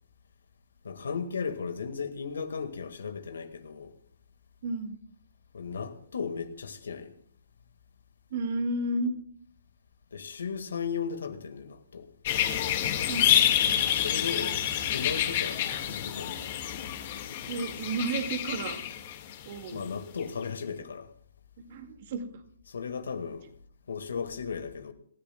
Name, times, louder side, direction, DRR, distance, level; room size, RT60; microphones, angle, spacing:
voice 1, 0.8-3.9 5.5-7.2 10.1-12.1 13.9-14.6 14.9-16.4 19.7-21.1 22.7-23.5 23.9-24.9, left 6 dB, 70° left, 1.9 m, -36 dB
voice 2, 4.6-5.0 8.3-9.2 13.1-13.4 17.5-18.8 19.4-19.8 21.6-22.4, right 2 dB, 50° right, 2.1 m, -32 dB
sound 1, 12.2-19.8 20.2-20.3, left 10 dB, 45° left, 2.0 m, -28 dB
27.5 x 14.0 x 2.3 m
figure-of-eight pair, 130°, 0 cm